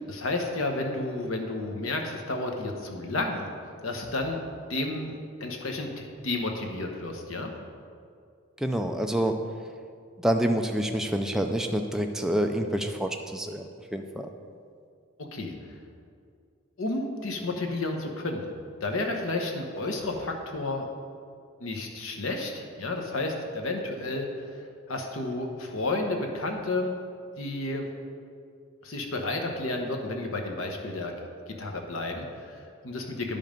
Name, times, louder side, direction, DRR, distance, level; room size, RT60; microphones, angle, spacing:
voice 1, 0.1-3.5 3.8-4.4 4.7-7.5 15.2-15.5 16.8-18.5 18.8-20.9 21.6-26.9 27.4-27.9 28.8-31.1 31.5-33.4, left 2 dB, 70° left, 3 dB, 1.1 m, -31 dB
voice 2, 8.6-9.4 10.2-14.3, right 1 dB, ahead, 3 dB, 0.3 m, -27 dB
10.0 x 5.4 x 5.2 m, 2.3 s
head